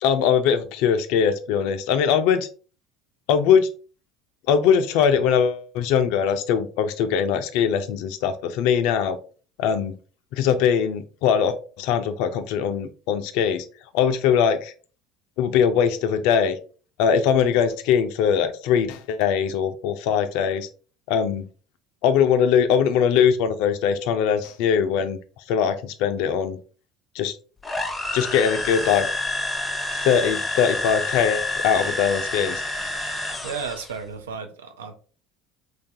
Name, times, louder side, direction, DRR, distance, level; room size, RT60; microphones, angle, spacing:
voice 1, 0.0-2.5 3.3-3.7 4.5-9.2 9.6-10.0 10.3-13.6 13.9-14.7 15.4-16.6 17.0-20.7 21.1-21.5 22.0-25.2 25.5-26.6 27.2-27.4 28.1-29.1 29.9-32.6, left 7 dB, 70° left, 0.3 m, -21 dB
sound 1, 27.6-34.0, left 2 dB, 15° left, 0.5 m, -28 dB
voice 2, 33.4-34.9, right 6 dB, 90° right, 0.4 m, -33 dB
3.2 x 2.3 x 2.6 m
hypercardioid pair, 75°, 0 cm